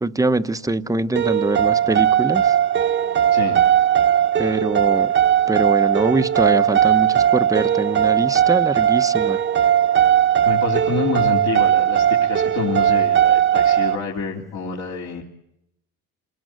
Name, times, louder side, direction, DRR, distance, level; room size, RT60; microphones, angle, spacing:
voice 1, 0.0-2.6 4.4-5.1 5.5-9.4, right 2 dB, 10° right, 11 dB, 0.9 m, -23 dB
sound 1, 1.2-14.0, right 10 dB, 35° right, 1.0 m, -18 dB
voice 2, 10.5-15.2, left 5 dB, 60° left, -3 dB, 3.6 m, -27 dB
28.5 x 18.5 x 9.3 m, 0.80 s
cardioid pair, 125°, 32 cm